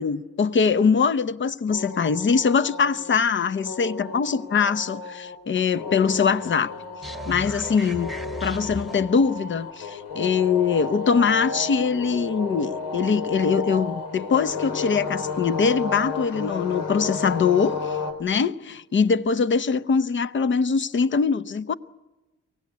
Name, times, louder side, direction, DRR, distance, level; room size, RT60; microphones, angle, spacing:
voice 1, 0.0-6.7 7.3-8.1 8.4-21.7, left 5 dB, 40° left, 0.8 m, -22 dB
sound 1, 1.7-18.1, left 4 dB, 90° left, 3.7 m, -32 dB
sound 2, 7.0-9.3, right 2 dB, ahead, 1.2 m, -36 dB
23.5 x 17.0 x 9.5 m
cardioid pair, 90°, 30 cm